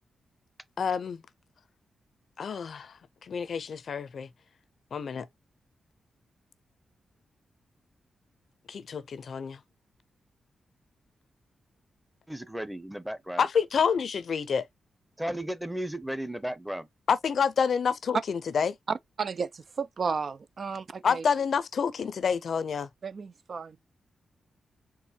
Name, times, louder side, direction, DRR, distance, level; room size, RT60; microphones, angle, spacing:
voice 1, 0.8-1.2 2.4-2.9 3.2-4.3 4.9-5.3 8.7-9.6 13.4-14.6 17.1-18.7 21.0-22.9, left 6 dB, 65° left, 0.5 m, -28 dB
voice 2, 12.3-13.5 15.2-16.9, right 1 dB, 5° right, 0.8 m, -34 dB
voice 3, 18.9-21.2 23.0-23.8, right 5 dB, 50° right, 0.4 m, -33 dB
4.6 x 3.8 x 2.8 m
cardioid pair, 95°, 0 cm